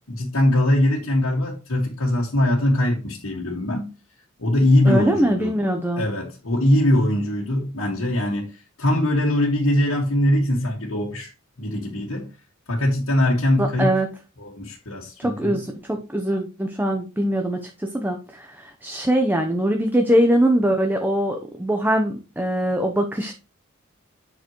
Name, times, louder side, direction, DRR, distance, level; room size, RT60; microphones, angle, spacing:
voice 1, 0.1-3.9 4.4-5.5 6.0-11.3 11.6-12.3 12.7-14.0 14.4-15.6, left 1 dB, 75° left, 1.8 m, -21 dB
voice 2, 4.8-6.1 13.6-14.1 15.2-23.3, right 1 dB, 10° right, 0.8 m, -22 dB
7.9 x 6.6 x 3.0 m
head